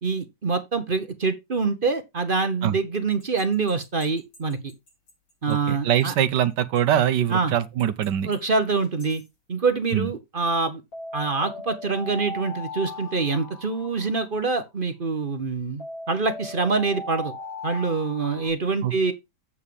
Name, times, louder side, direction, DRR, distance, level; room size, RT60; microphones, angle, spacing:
voice 1, 0.0-4.6 5.4-6.1 7.3-7.5 8.3-9.2 9.5-10.8 11.1-17.3 17.6-19.1, right 4 dB, 35° right, 1.0 m, -25 dB
sound 1, 3.2-5.1 5.5-5.6 6.0-6.1 6.8-7.2 7.8-8.4 8.8-9.2 10.9-14.7 15.8-18.5, left 2 dB, 90° left, 5.5 m, -38 dB
voice 2, 5.5-8.3 9.9-10.1 18.8-18.9, right 10 dB, 70° right, 1.4 m, -23 dB
8.4 x 7.3 x 3.3 m
omnidirectional pair, 2.0 m